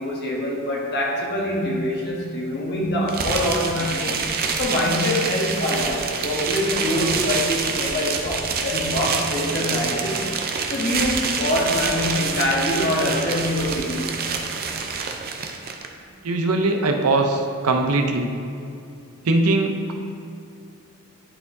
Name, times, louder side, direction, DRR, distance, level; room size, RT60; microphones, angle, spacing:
voice 1, 0.0-4.2 4.6-10.3 10.7-14.2, left 1 dB, 50° left, -2 dB, 1.2 m, -24 dB
sound 1, 3.1-15.9, right 5 dB, 45° right, 0.5 m, -26 dB
voice 2, 16.2-18.3 19.2-19.9, right 2 dB, 80° right, 4 dB, 0.7 m, -21 dB
11.0 x 4.4 x 2.7 m, 2.5 s
head